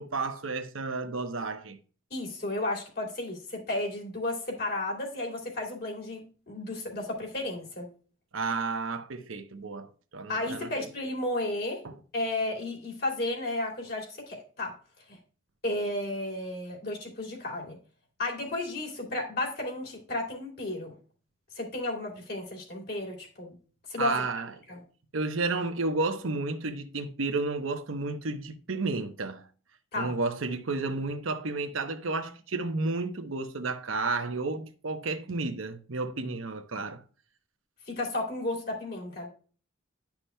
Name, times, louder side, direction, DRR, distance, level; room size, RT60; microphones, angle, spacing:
voice 1, 0.0-1.8 8.3-10.7 11.8-11.9 24.0-24.5 25.1-29.4 30.0-37.0, right 3 dB, 85° right, 0.9 m, -32 dB
voice 2, 2.1-7.9 10.3-11.8 12.1-14.7 15.1-15.2 15.6-17.8 18.2-20.9 21.5-23.5 23.9-24.2 24.7-24.8 29.9-30.1 37.9-39.3, left 2 dB, 50° left, 2.8 m, -33 dB
11.5 x 5.9 x 2.2 m
head